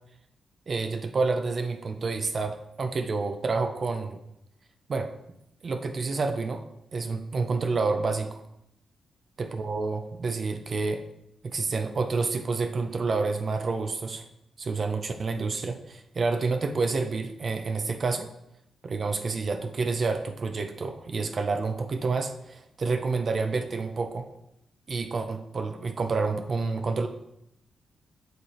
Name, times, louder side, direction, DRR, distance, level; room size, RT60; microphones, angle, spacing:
voice 1, 0.7-4.2 4.9-5.1 5.6-6.7 6.9-8.4 9.4-11.0 11.4-14.3 14.6-18.3 18.8-24.3 24.9-27.1, right 4 dB, 45° right, 7 dB, 0.6 m, -29 dB
7.9 x 4.8 x 4.3 m, 0.82 s
cardioid pair, 110°, 0 cm